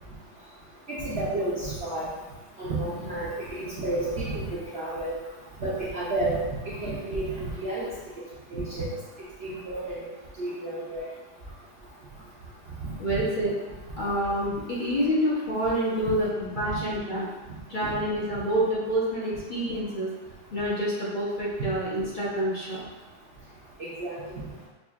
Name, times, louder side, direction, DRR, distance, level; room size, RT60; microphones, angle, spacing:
voice 1, 0.9-2.1 2.6-5.2 5.6-7.9 8.5-8.9 9.4-10.0 10.4-11.1 13.1-13.2 23.8-24.4, right 2 dB, 60° right, -8 dB, 0.7 m, -31 dB
voice 2, 13.0-13.6 14.0-17.3 17.7-20.1 20.5-22.8, right 1 dB, 45° left, -7 dB, 0.7 m, -27 dB
5.2 x 2.4 x 2.4 m, 1.1 s
omnidirectional pair, 1.8 m